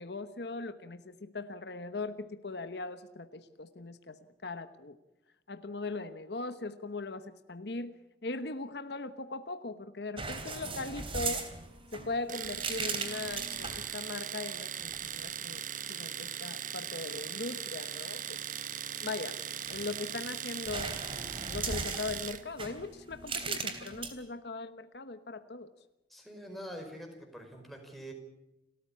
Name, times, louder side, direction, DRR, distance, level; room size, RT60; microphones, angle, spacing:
voice 1, 0.0-5.0 5.5-11.5 11.9-15.6 15.9-18.4 19.0-19.4 19.7-21.0 21.5-25.7, left 3 dB, 65° left, 10 dB, 1.1 m, -39 dB
sound 1, 10.2-13.9 14.8-15.2 19.4-20.2 20.7-24.1, right 4 dB, 30° right, 3.1 m, -38 dB
Domestic sounds home sounds, 12.3-22.5, right 9 dB, 45° right, 1.2 m, -39 dB
voice 2, 26.1-28.1, equal, ahead, 2 dB, 4.8 m, -45 dB
29.5 x 14.0 x 8.5 m, 1.0 s
head